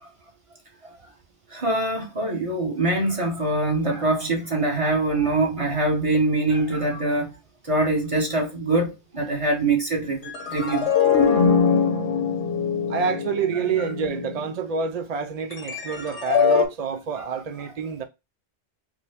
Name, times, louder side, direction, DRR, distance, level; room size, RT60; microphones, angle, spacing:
voice 1, 1.5-7.3 7.6-10.9, right 2 dB, 30° right, 1.4 m, -24 dB
sound 1, 10.3-14.5 15.5-16.6, left 6 dB, 75° left, 1.3 m, -22 dB
voice 2, 12.9-18.0, right 6 dB, 65° right, 0.4 m, -28 dB
5.0 x 2.2 x 3.4 m
omnidirectional pair, 1.2 m